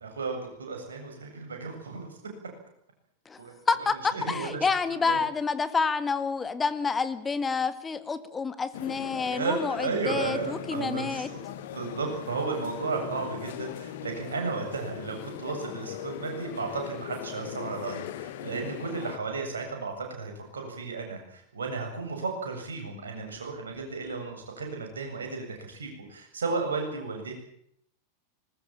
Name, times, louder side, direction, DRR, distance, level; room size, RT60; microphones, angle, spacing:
voice 1, 0.0-2.2 3.4-3.6 4.1-4.7 4.9-5.2 9.3-11.4 11.7-27.3, right 4 dB, 70° right, 3 dB, 7.9 m, -34 dB
voice 2, 3.7-11.3, left 5 dB, 15° left, 13 dB, 1.7 m, -28 dB
sound 1, 8.7-19.2, left 11 dB, 55° left, 1.8 m, -39 dB
21.0 x 20.0 x 9.0 m, 0.69 s
figure-of-eight pair, 90°, 0 cm